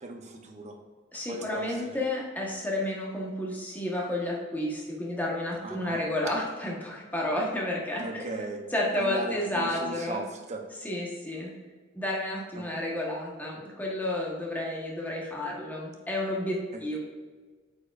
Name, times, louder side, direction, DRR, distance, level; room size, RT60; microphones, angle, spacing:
voice 1, 0.0-0.8 1.3-2.0 5.6-6.0 8.0-8.6 9.0-10.6 12.6-12.7 16.7-16.8, right 2 dB, 35° right, 3 dB, 0.8 m, -37 dB
voice 2, 1.1-8.3 8.7-10.2 10.8-11.5 11.9-17.0, left 1 dB, 10° left, -3 dB, 1.2 m, -31 dB
8.5 x 4.8 x 2.5 m, 1.4 s
head